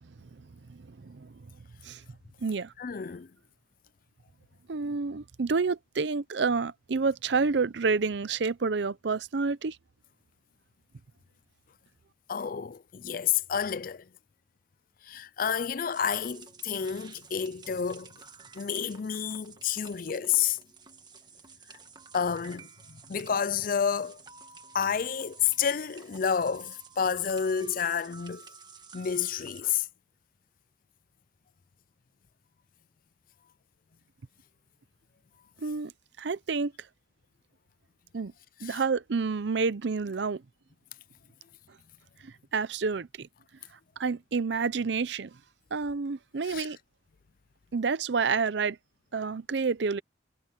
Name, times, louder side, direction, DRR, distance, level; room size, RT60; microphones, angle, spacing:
voice 1, 0.7-1.3 1.8-2.0 2.4-2.7 4.7-9.8 35.6-35.9 36.2-36.7 38.1-38.3 38.6-40.4 42.2-43.3 44.0-45.3 45.7-46.8 47.7-48.8 49.1-50.0, right 4 dB, 65° right, 0.6 m, -29 dB
voice 2, 2.8-3.3 12.3-14.1 15.0-18.1 18.5-20.6 22.1-24.2 24.7-28.4 28.9-29.9 38.6-38.8 46.4-46.7, left 7 dB, 45° left, 0.5 m, -30 dB
sound 1, 15.9-29.6, right 4 dB, 25° right, 1.5 m, -50 dB
head